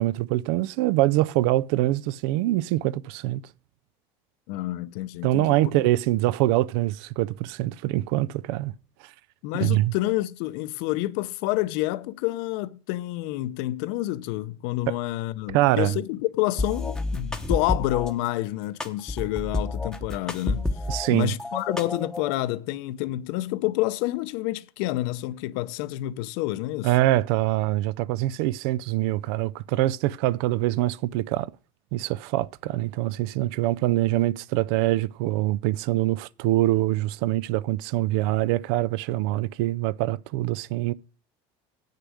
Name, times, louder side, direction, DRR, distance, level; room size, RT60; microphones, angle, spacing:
voice 1, 0.0-3.4 5.2-8.7 9.5-9.9 14.9-15.0 15.5-16.0 20.9-21.3 26.8-31.5 31.9-40.9, right 16 dB, 75° right, 0.4 m, -24 dB
voice 2, 4.5-5.7 9.4-20.7 21.1-26.9, left 17 dB, 70° left, 0.7 m, -28 dB
sound 1, 16.6-18.1 18.8-21.1 21.4-22.4, left 2 dB, 5° left, 0.8 m, -29 dB
8.4 x 6.7 x 6.2 m
cardioid pair, 160°, 13 cm